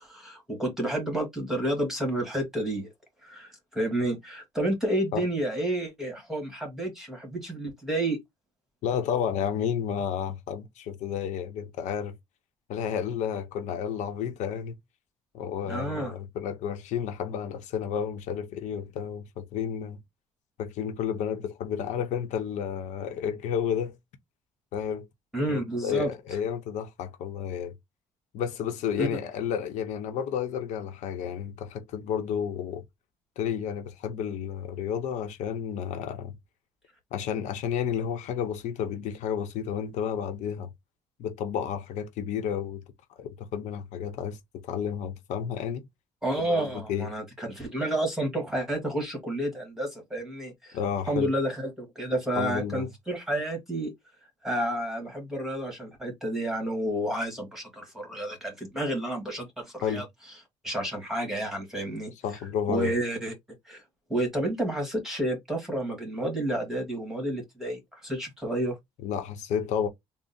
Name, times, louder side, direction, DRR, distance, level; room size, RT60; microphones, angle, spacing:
voice 1, 0.0-2.9 3.2-8.2 15.7-16.1 25.3-26.1 29.0-29.1 46.2-50.8 51.1-53.9 54.4-60.0 60.6-62.1 62.7-63.3 63.6-63.8 64.1-68.8, right 1 dB, 5° right, 1.5 m, -30 dB
voice 2, 8.8-12.1 12.7-14.7 15.3-20.0 20.6-24.0 24.7-25.1 25.5-27.7 28.3-32.8 33.4-36.3 37.1-40.7 41.2-42.8 43.2-45.9 46.4-47.1 50.7-51.3 52.4-52.9 59.8-60.0 62.2-62.9 69.0-69.9, left 8 dB, 80° left, 0.7 m, -31 dB
3.6 x 2.0 x 4.0 m
cardioid pair, 160°, 12 cm